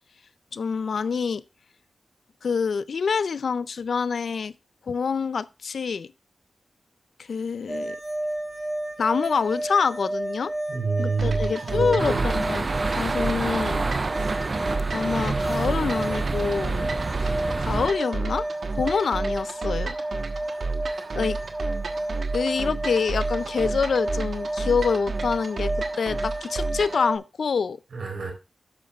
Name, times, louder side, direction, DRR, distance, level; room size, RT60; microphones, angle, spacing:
voice 1, 0.5-1.4 2.4-4.5 4.9-6.1 7.3-8.0 9.0-10.5 11.0-13.9 14.9-16.9 17.2-18.4 18.7-20.0 21.2-21.4 22.3-25.7 26.0-27.8, left 5 dB, 80° left, 0.5 m, -26 dB
sound 1, 7.7-27.2, right 1 dB, 15° right, 6.8 m, -32 dB
voice 2, 10.7-12.2 20.8-21.2 27.9-28.3, right 4 dB, 85° right, 4.0 m, -28 dB
sound 2, 11.2-27.1, right 3 dB, 70° right, 1.4 m, -32 dB
sound 3, 12.0-17.9, right 3 dB, 40° right, 0.5 m, -28 dB
12.5 x 9.6 x 2.4 m
wide cardioid pair, 105°, 0 cm